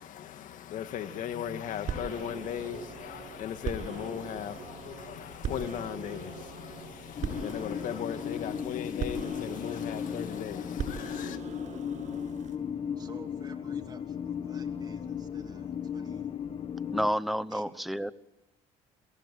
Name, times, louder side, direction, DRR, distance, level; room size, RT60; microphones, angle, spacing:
voice 1, 0.0-11.4, left 9 dB, 65° left, 2.0 m, -37 dB
sound 1, 1.6-12.5, right 6 dB, 55° right, 7.8 m, -40 dB
sound 2, 7.2-17.1, left 8 dB, 40° left, 1.1 m, -36 dB
voice 2, 13.0-16.3 17.5-17.8, right 3 dB, 30° right, 2.9 m, -52 dB
voice 3, 16.9-18.1, equal, ahead, 1.0 m, -29 dB
23.0 x 16.5 x 9.2 m
supercardioid pair, 70°, 15 cm